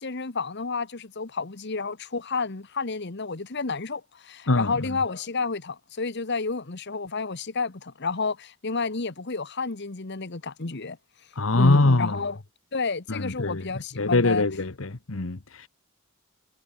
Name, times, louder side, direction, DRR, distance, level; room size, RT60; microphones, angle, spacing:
voice 1, 0.0-11.0 11.5-12.4 12.7-14.4, left 4 dB, 55° left, 1.3 m, -30 dB
voice 2, 11.4-12.2 13.1-13.7 14.0-15.7, left 2 dB, 75° left, 1.3 m, -23 dB
head